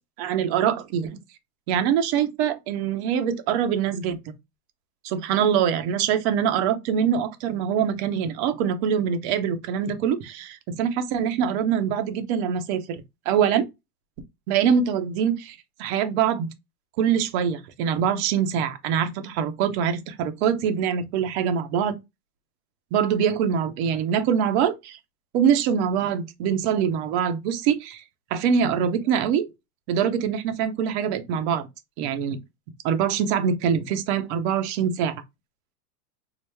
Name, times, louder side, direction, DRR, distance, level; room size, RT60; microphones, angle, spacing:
voice 1, 0.2-1.2 1.7-4.3 5.0-13.7 14.5-16.5 17.0-22.0 22.9-25.0 25.3-28.0 28.3-29.5 29.9-31.7 32.0-32.4 32.8-35.1, right 8 dB, 45° right, 0.8 m, -24 dB
4.7 x 2.0 x 3.3 m
hypercardioid pair, 130°, 46 cm